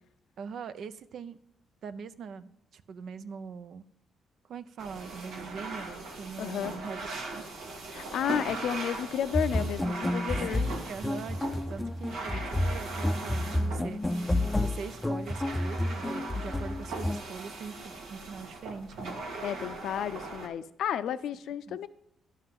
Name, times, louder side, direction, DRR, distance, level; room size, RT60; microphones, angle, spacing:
voice 1, 0.4-1.4 1.8-3.8 4.4-7.1 7.3-7.4 10.5-14.0 14.6-19.2 21.7-21.8, right 6 dB, 65° right, 13 dB, 0.6 m, -42 dB
sound 1, 4.8-20.5, right 3 dB, 85° right, 2.0 m, -40 dB
voice 2, 6.4-6.8 7.9-10.6 19.4-21.9, left 9 dB, 75° left, 13 dB, 0.5 m, -32 dB
sound 2, 9.3-17.2, left 1 dB, 15° left, 0.5 m, -30 dB
Bass guitar, 12.4-18.6, right 2 dB, 20° right, 1.1 m, -58 dB
11.0 x 5.5 x 7.7 m, 0.73 s
cardioid pair, 90°, 0 cm